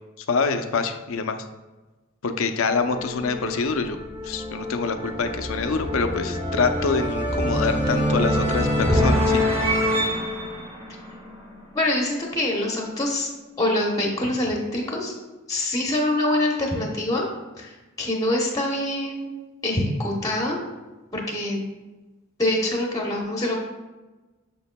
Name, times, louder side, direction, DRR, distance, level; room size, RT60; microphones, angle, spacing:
voice 1, 0.3-1.4 2.2-4.0 4.2-9.4, left 4 dB, 70° left, 8 dB, 0.5 m, -25 dB
sound 1, 2.7-11.8, equal, 25° right, 1.3 m, -25 dB
voice 2, 11.7-13.3 13.6-15.1 15.5-17.2 17.6-19.3 19.6-20.6 21.1-21.6 22.4-23.6, left 1 dB, 15° left, -1 dB, 0.8 m, -25 dB
6.8 x 6.5 x 2.2 m, 1.2 s
head